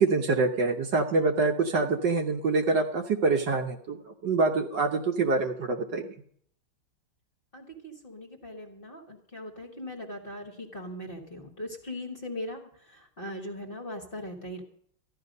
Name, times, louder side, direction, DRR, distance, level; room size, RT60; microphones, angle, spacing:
voice 1, 0.0-4.0 4.2-6.1, right 3 dB, 60° right, 4 dB, 1.4 m, -25 dB
voice 2, 7.5-14.6, left 1 dB, 30° left, 2 dB, 1.5 m, -40 dB
14.0 x 11.5 x 5.3 m, 0.63 s
omnidirectional pair, 2.4 m